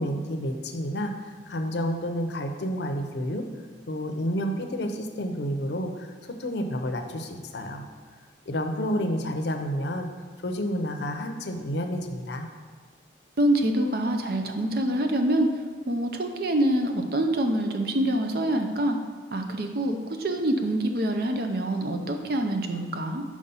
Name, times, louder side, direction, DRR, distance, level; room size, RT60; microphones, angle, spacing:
voice 1, 0.0-3.5 3.9-7.8 8.5-10.1 10.4-12.5, equal, 65° left, 5 dB, 0.6 m, -30 dB
voice 2, 13.4-15.5 15.9-19.0 19.3-23.2, right 1 dB, 55° right, 4 dB, 0.6 m, -25 dB
5.3 x 4.9 x 5.5 m, 1.5 s
head